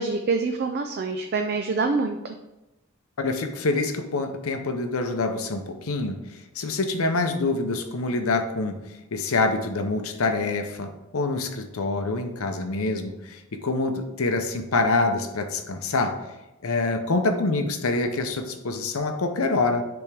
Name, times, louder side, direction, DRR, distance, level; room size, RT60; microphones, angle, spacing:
voice 1, 0.0-2.2, right 4 dB, 50° right, 5 dB, 0.4 m, -25 dB
voice 2, 3.2-6.2 6.6-8.8 9.1-16.2 16.6-19.8, left 3 dB, 80° left, 7 dB, 0.7 m, -26 dB
10.0 x 3.5 x 3.4 m, 0.97 s
head